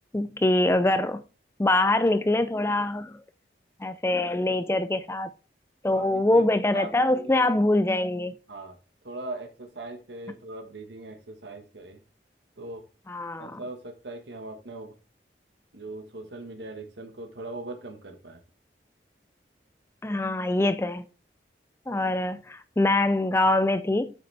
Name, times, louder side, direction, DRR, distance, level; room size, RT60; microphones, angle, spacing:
voice 1, 0.1-1.2 1.6-3.2 3.8-5.3 5.8-8.3 13.1-13.6 20.0-21.0 21.9-24.1, left 2 dB, 15° left, 0.4 m, -24 dB
voice 2, 5.9-6.5 6.7-7.5 8.5-8.8 9.0-12.0 12.6-12.8 13.4-14.9 15.7-18.4, right 2 dB, 85° right, 1.4 m, -40 dB
8.1 x 6.7 x 3.3 m
head